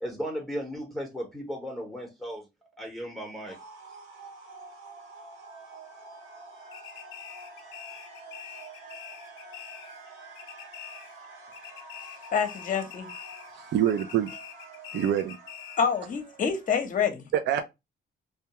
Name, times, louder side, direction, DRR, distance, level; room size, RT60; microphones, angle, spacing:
voice 1, 0.0-2.4 2.8-3.6, equal, ahead, 0.8 m, -35 dB
sound 1, 3.5-17.0, right 3 dB, 90° right, 0.8 m, -48 dB
sound 2, 6.7-10.1 10.3-11.3 11.5-13.6 13.9-16.0, left 10 dB, 85° left, 0.5 m, -45 dB
voice 2, 12.3-13.1 15.8-17.2, left 6 dB, 40° left, 0.7 m, -27 dB
voice 3, 13.7-14.3 14.9-15.4 17.3-17.6, right 10 dB, 65° right, 0.4 m, -25 dB
2.2 x 2.2 x 2.8 m
cardioid pair, 90°, 20 cm